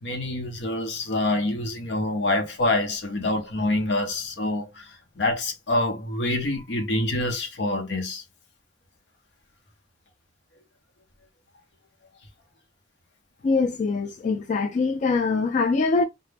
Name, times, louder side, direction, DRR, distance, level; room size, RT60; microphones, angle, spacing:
voice 1, 0.0-8.2, left 2 dB, 75° left, 0.8 m, -26 dB
voice 2, 13.4-16.0, left 4 dB, 45° left, 0.3 m, -23 dB
2.1 x 2.0 x 3.2 m
head